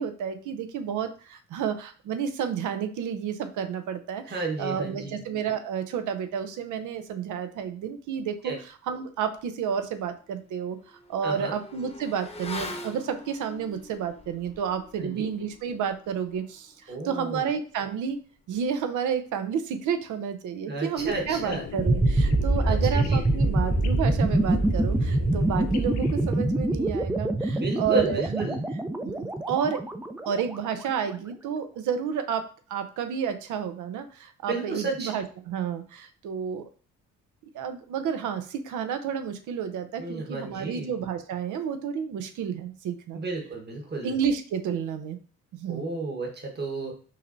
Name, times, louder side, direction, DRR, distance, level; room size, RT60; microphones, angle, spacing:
voice 1, 0.0-8.5 8.9-10.8 11.1-18.2 18.5-28.4 29.0-29.8 30.2-36.7 37.5-43.2 44.0-45.2 45.5-45.9, right 7 dB, 80° right, 9 dB, 0.7 m, -31 dB
voice 2, 4.3-5.2 8.4-8.6 11.2-11.6 15.0-15.3 16.9-17.4 20.7-21.7 22.6-23.2 27.5-28.6 34.5-35.1 40.0-40.9 43.1-44.1 45.7-46.9, right 3 dB, 35° right, 2 dB, 1.3 m, -32 dB
Motorcycle / Accelerating revving vroom, 9.4-9.5 9.9-19.9 20.1-20.3, left 2 dB, 20° left, 0.9 m, -44 dB
sound 1, 21.0-26.4, left 9 dB, 60° left, 0.5 m, -39 dB
sound 2, 21.8-30.7, right 2 dB, 5° right, 0.4 m, -25 dB
5.6 x 3.1 x 2.6 m, 0.40 s
cardioid pair, 90°, 30 cm